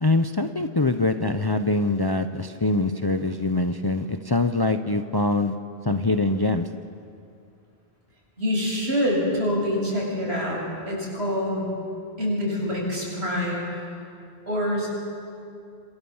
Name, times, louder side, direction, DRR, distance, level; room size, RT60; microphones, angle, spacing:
voice 1, 0.0-5.6 5.8-6.7, left 2 dB, 25° left, 8 dB, 0.8 m, -23 dB
voice 2, 8.4-10.6 10.9-11.7 12.2-13.8 14.5-14.9, left 1 dB, 90° right, -3 dB, 7.8 m, -25 dB
27.5 x 26.0 x 7.3 m, 2.5 s
omnidirectional pair, 1.1 m